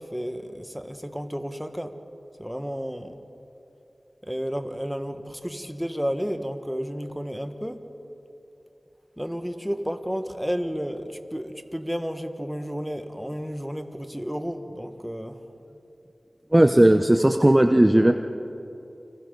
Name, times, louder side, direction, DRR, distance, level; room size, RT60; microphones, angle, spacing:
voice 1, 0.0-1.9 2.4-3.2 4.2-7.8 9.2-15.4, equal, 5° right, 6 dB, 1.5 m, -32 dB
voice 2, 16.5-18.1, right 1 dB, 20° right, 6 dB, 0.8 m, -16 dB
29.5 x 25.0 x 4.0 m, 2.9 s
wide cardioid pair, 50°, 0 cm